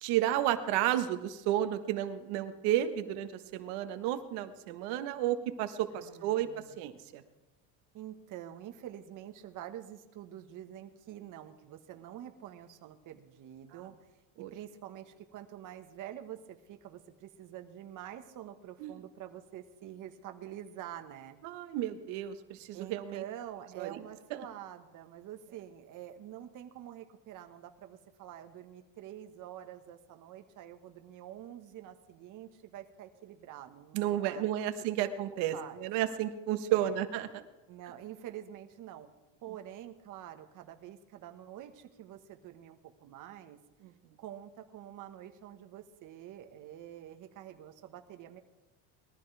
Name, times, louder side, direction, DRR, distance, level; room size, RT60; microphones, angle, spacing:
voice 1, 0.0-6.5 6.8-7.2 14.4-14.5 18.8-18.9 21.4-23.2 23.8-24.0 33.9-37.4 43.8-43.9, right 12 dB, 80° right, 9 dB, 1.4 m, -32 dB
voice 2, 5.9-6.8 7.9-13.9 14.5-21.4 22.7-34.5 35.0-35.1 35.5-35.9 36.7-37.0 37.7-39.1 39.4-43.6 44.2-48.4, right 11 dB, 50° right, 6 dB, 1.5 m, -47 dB
21.5 x 14.5 x 3.5 m, 1.1 s
cardioid pair, 130°, 39 cm